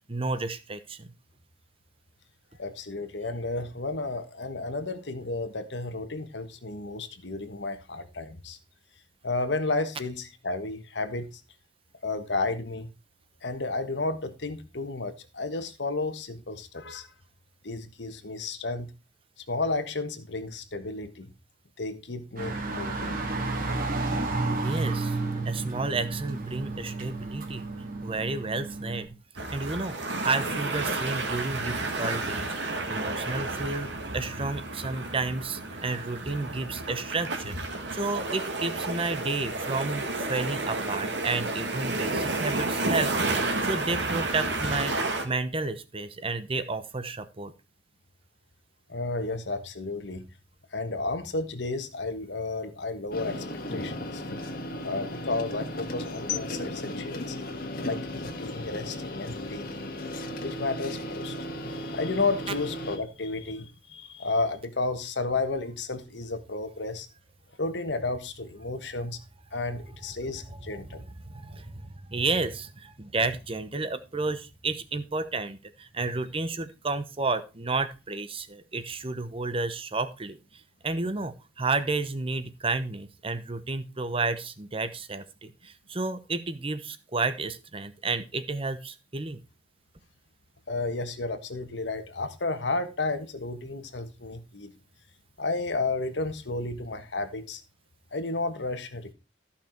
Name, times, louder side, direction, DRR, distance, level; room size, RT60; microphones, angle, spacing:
voice 1, 0.1-1.1 24.5-25.2 25.4-27.7 28.0-29.2 29.5-30.0 30.2-32.5 32.9-43.1 43.4-44.9 45.2-47.5 70.5-80.4 80.8-89.4, right 3 dB, 30° right, 1.0 m, -31 dB
voice 2, 2.6-8.6 9.2-11.4 12.0-12.9 13.4-17.1 17.6-18.9 19.5-21.3 21.8-23.2 48.9-50.2 50.7-53.4 53.7-54.2 54.8-57.4 57.8-59.9 60.4-61.3 61.7-67.1 67.6-69.2 69.5-71.0 90.7-94.7 95.4-97.6 98.1-99.1, left 3 dB, 75° left, 1.4 m, -32 dB
sound 1, 22.4-29.1, right 3 dB, 50° right, 2.2 m, -31 dB
sound 2, 29.4-45.3, right 2 dB, 70° right, 1.8 m, -31 dB
sound 3, 53.1-63.0, left 1 dB, 55° left, 1.8 m, -35 dB
14.0 x 5.8 x 4.5 m
head